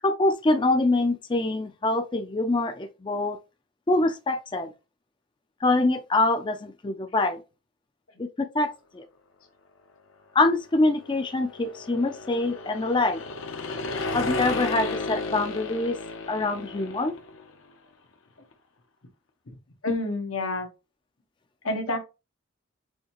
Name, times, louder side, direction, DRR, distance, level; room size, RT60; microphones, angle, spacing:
voice 1, 0.0-3.4 3.9-4.7 5.6-7.4 8.2-9.0 10.3-13.2 14.1-16.0 16.3-17.1, left 2 dB, 25° left, 0.4 m, -25 dB
sound 1, 10.6-17.5, left 3 dB, 70° left, 0.8 m, -33 dB
voice 2, 19.8-20.7 21.6-22.0, left 2 dB, 90° left, 1.3 m, -28 dB
6.3 x 2.8 x 2.9 m
head